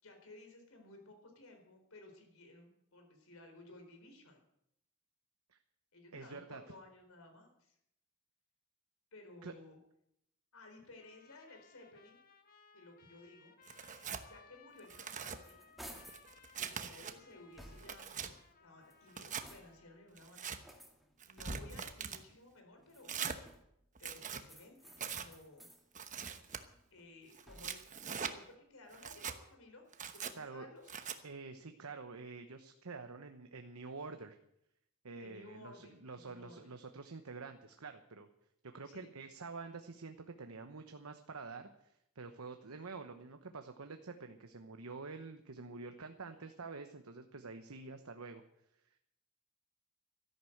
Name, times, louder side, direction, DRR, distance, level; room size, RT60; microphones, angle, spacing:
voice 1, 0.0-4.4 5.9-7.8 9.1-9.8 10.5-12.2 12.7-13.5 14.3-15.6 16.6-20.5 21.2-23.1 24.0-25.7 26.9-27.8 28.1-29.8 30.2-31.0 35.2-36.7 38.8-39.1 46.3-46.5, left 2 dB, 75° left, 4 dB, 4.3 m, -57 dB
voice 2, 6.1-6.6 9.4-9.5 30.4-30.7 31.2-34.4 35.0-38.3 38.6-48.4 48.8-48.9, right 4 dB, 90° right, 6 dB, 1.0 m, -48 dB
Trumpet, 11.0-20.1, left 5 dB, 45° left, 1.6 m, -63 dB
Tearing, 13.7-14.2 14.8-15.4 16.0-17.1 17.6-18.3 19.1-19.5 20.2-20.6 21.2-22.2 23.0-23.4 23.9-24.4 25.0-25.3 25.9-26.6 27.3-28.3 28.9-29.4 29.9-30.3 30.9-31.2, right 6 dB, 35° right, 1.0 m, -42 dB
sound 1, 15.3-16.3 16.9-18.1 18.7-20.0 20.6-21.9 22.8-23.8 24.4-25.8 26.3-27.9, right 1 dB, ahead, 2.0 m, -57 dB
13.0 x 11.0 x 7.9 m, 0.76 s
head